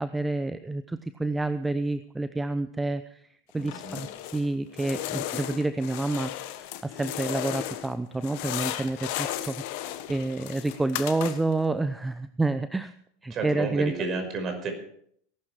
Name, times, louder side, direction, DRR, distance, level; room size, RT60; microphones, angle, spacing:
voice 1, 0.0-3.2 3.5-6.3 6.6-12.9 13.2-13.9, right 2 dB, 10° right, 12 dB, 0.7 m, -29 dB
sound 1, 3.6-4.5 4.7-7.9 8.2-11.6, left 13 dB, 55° left, 1.4 m, -35 dB
voice 2, 3.6-4.0 13.3-14.7, right 4 dB, 35° right, 5 dB, 5.5 m, -31 dB
18.5 x 12.0 x 4.9 m, 0.65 s
figure-of-eight pair, 85°, 0 cm